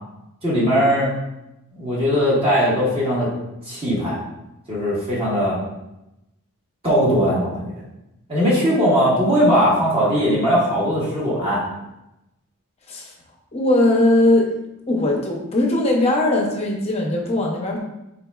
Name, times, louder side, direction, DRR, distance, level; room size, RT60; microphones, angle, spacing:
voice 1, 0.4-1.1 1.8-3.3 3.7-4.2 4.7-5.6 6.8-7.7 8.3-11.6, equal, 25° right, -7 dB, 1.3 m, -19 dB
voice 2, 13.5-14.6 14.9-17.8, left 1 dB, 30° left, 0 dB, 0.6 m, -19 dB
3.9 x 3.8 x 2.3 m, 0.91 s
head